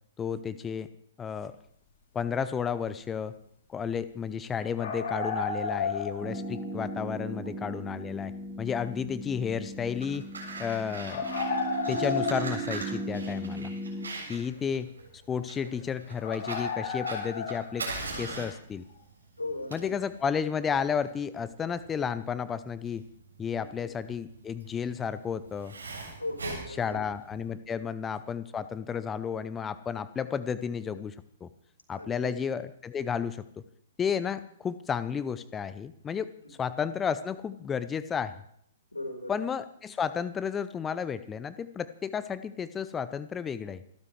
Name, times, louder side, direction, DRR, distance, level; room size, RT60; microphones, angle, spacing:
voice 1, 0.2-0.9 1.2-1.5 2.1-3.3 3.7-8.3 8.6-10.2 10.6-11.2 11.9-13.7 14.3-17.9 18.2-18.8 19.7-23.0 23.4-25.7 26.8-31.2 31.4-31.5 31.9-33.5 34.0-36.3 36.6-38.3 39.3-43.8, left 7 dB, 15° left, 15 dB, 0.6 m, -32 dB
sound 1, 4.8-6.8 7.1-7.2 11.1-13.0 13.4-13.5 14.5-14.6 15.0-15.1 15.6-15.8 16.2-18.1, left 5 dB, 55° left, 3.1 m, -33 dB
sound 2, 6.2-14.1, right 3 dB, 25° right, 2.7 m, -37 dB
Fire, 9.8-27.5, right 3 dB, 80° right, 7.7 m, -41 dB
voice 2, 14.1-14.5 19.4-20.0 23.5-23.9 26.2-27.0 27.8-27.9 31.9-32.4 36.4-36.6 38.9-39.4, left 2 dB, 90° left, 4 dB, 4.3 m, -39 dB
28.5 x 12.5 x 3.2 m, 0.68 s
figure-of-eight pair, 115°, 0 cm